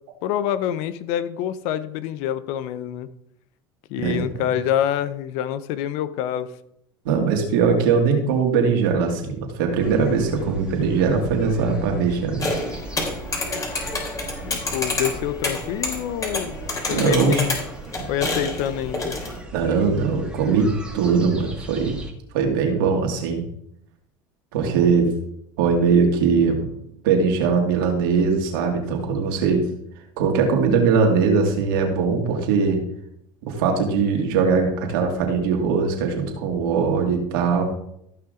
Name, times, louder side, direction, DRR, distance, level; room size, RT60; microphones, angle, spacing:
voice 1, 0.2-3.1 3.9-6.5 14.4-16.6 16.9-17.5 18.1-19.1, left 10 dB, 70° left, 14 dB, 0.8 m, -26 dB
voice 2, 7.0-12.5 16.9-17.5 19.5-22.0 22.3-23.4 24.5-25.1 25.6-26.7 27.0-29.7 30.2-32.8 33.4-37.6, right 5 dB, 80° right, 2 dB, 2.4 m, -21 dB
sound 1, 9.8-22.1, right 2 dB, 10° right, 1.8 m, -38 dB
sound 2, 12.4-19.4, left 2 dB, 30° left, 3.4 m, -28 dB
14.5 x 5.8 x 3.9 m, 0.75 s
supercardioid pair, 95°, 11 cm